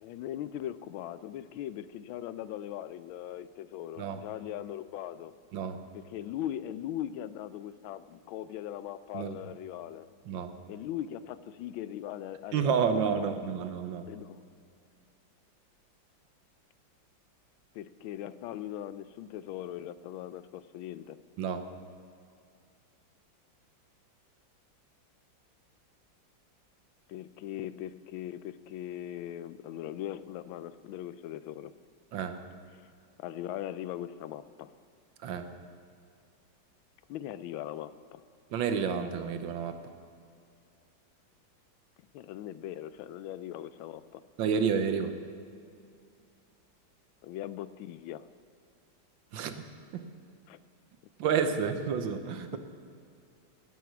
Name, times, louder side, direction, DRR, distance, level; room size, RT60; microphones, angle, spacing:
voice 1, 0.0-5.3 5.9-10.1 10.7-13.3 14.1-14.4 17.7-21.2 27.1-31.7 33.2-34.7 37.1-38.2 42.1-44.2 47.2-48.3 50.5-50.6, left 11 dB, 90° left, 15 dB, 1.4 m, -40 dB
voice 2, 12.5-14.0 21.4-21.6 32.1-32.4 35.2-35.5 38.5-39.8 44.4-45.2 49.3-49.5 49.9-50.0 51.2-52.6, right 6 dB, 75° right, 8 dB, 1.6 m, -30 dB
16.5 x 9.4 x 6.1 m, 2.4 s
omnidirectional pair, 2.2 m